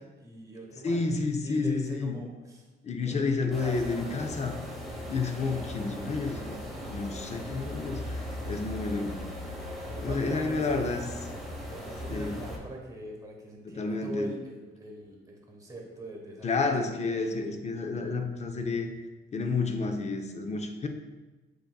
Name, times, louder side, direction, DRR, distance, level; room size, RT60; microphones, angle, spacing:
voice 1, 0.0-1.1 1.4-2.7 3.1-4.2 4.9-5.0 6.2-7.0 7.2-7.6 8.1-8.7 9.9-10.8 11.7-17.2 17.9-18.2, right 1 dB, 15° right, 0 dB, 1.1 m, -43 dB
voice 2, 0.8-2.1 2.8-4.6 5.1-6.6 6.9-9.2 10.0-11.0 12.1-12.4 13.6-14.3 16.4-18.9 19.3-20.9, left 4 dB, 35° left, 5 dB, 0.4 m, -30 dB
sound 1, 3.5-12.6, equal, ahead, 0.8 m, -38 dB
7.4 x 2.6 x 2.3 m, 1.2 s
cardioid pair, 90°, 20 cm